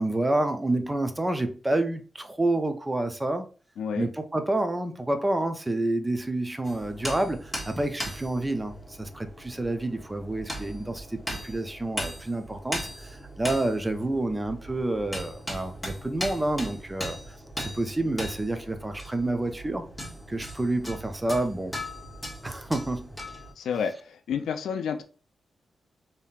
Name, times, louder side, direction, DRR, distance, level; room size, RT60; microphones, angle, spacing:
voice 1, 0.0-3.5 4.0-19.8 20.3-21.7 22.4-23.1, right 2 dB, 15° right, 0.5 m, -29 dB
voice 2, 3.8-4.1 23.6-25.0, left 7 dB, 90° left, 0.3 m, -30 dB
sound 1, 6.6-23.5, equal, 5° left, 1.2 m, -38 dB
3.5 x 2.7 x 2.4 m
cardioid pair, 75°, 0 cm